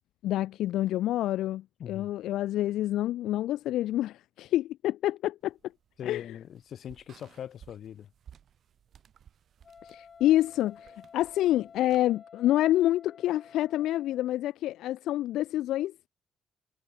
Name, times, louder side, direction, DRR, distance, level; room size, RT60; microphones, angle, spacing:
voice 1, 0.2-5.5 6.0-6.4 9.8-15.9, left 14 dB, 85° left, 0.3 m, -28 dB
voice 2, 1.8-2.1 6.0-8.1, left 9 dB, 65° left, 1.5 m, -41 dB
sound 1, 5.4-12.0, right 9 dB, 60° right, 5.0 m, -58 dB
Wind instrument woodwind instrument, 9.6-14.3, left 6 dB, 45° left, 4.3 m, -52 dB
cardioid pair, 90°, 0 cm